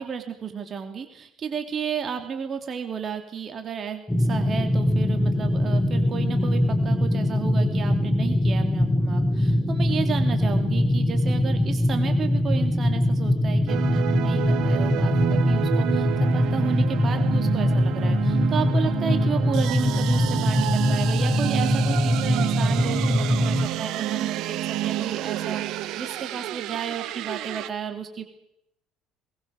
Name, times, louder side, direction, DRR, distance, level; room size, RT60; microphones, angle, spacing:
voice 1, 0.0-16.1 16.3-28.2, right 7 dB, 40° right, 5 dB, 3.0 m, -33 dB
sound 1, 4.1-23.7, left 1 dB, 10° left, 2.8 m, -22 dB
sound 2, 13.7-27.7, right 14 dB, 55° right, 0.9 m, -29 dB
22.0 x 21.0 x 6.5 m, 0.78 s
figure-of-eight pair, 60°, 0 cm